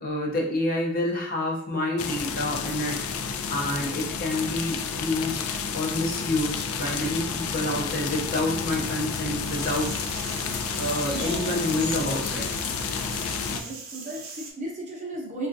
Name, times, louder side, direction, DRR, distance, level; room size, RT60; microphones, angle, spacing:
voice 1, 0.0-9.9 10.8-12.4, left 1 dB, 40° left, -1 dB, 0.6 m, -28 dB
sound 1, 2.0-13.6, left 5 dB, 80° left, 0.4 m, -31 dB
sound 2, 9.4-14.5, right 4 dB, 70° right, 0.6 m, -41 dB
sound 3, 10.8-12.3, left 1 dB, 20° left, 0.9 m, -44 dB
voice 2, 11.1-12.2 12.5-12.8 13.5-15.5, right 2 dB, 35° right, -2 dB, 0.7 m, -36 dB
3.5 x 2.4 x 2.6 m, 0.70 s
head